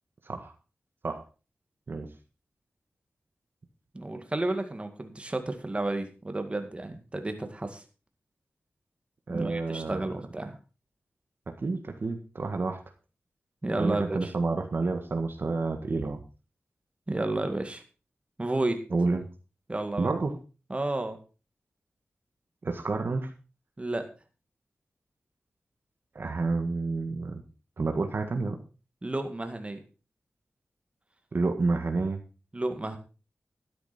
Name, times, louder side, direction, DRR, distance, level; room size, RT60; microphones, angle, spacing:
voice 1, 3.9-7.8 9.3-10.6 13.6-14.3 17.1-17.8 18.4-18.8 19.7-20.1 20.7-21.2 23.8-24.1 29.0-29.8 32.5-33.0, right 2 dB, 30° right, 6 dB, 2.1 m, -31 dB
voice 2, 9.3-10.0 11.5-12.8 13.8-16.2 18.9-19.3 20.0-20.4 22.6-23.3 26.1-27.4 27.8-28.6 31.3-32.2, right 3 dB, 60° right, 5 dB, 1.7 m, -29 dB
12.5 x 10.0 x 4.4 m, 0.33 s
wide cardioid pair, 70°, 4 cm